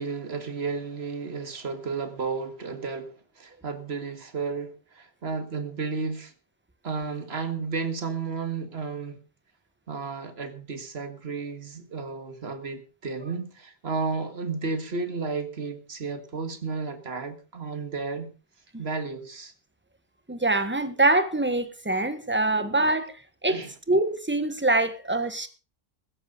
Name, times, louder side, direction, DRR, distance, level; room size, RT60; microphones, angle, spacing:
voice 1, 0.0-6.3 6.8-9.2 9.9-18.3 18.8-19.5 23.5-23.7, right 4 dB, 85° right, 2.0 m, -33 dB
voice 2, 20.3-23.1 23.4-23.6 23.9-25.5, right 2 dB, 10° right, 1.3 m, -24 dB
15.5 x 13.5 x 3.9 m
omnidirectional pair, 1.0 m